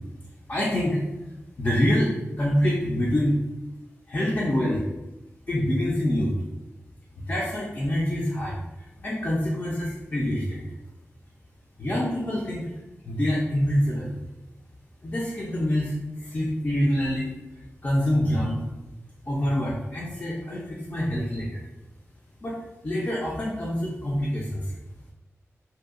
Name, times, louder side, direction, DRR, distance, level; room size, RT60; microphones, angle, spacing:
voice 1, 0.5-1.0 1.6-3.4 4.1-4.8 5.5-6.3 7.2-8.6 9.0-10.7 11.8-12.7 13.0-14.1 15.0-15.9 16.2-17.3 17.8-18.6 19.3-21.6 22.4-22.5 22.8-24.7, equal, 45° left, -5 dB, 0.5 m, -25 dB
2.6 x 2.2 x 2.4 m, 0.99 s
cardioid pair, 60°, 5 cm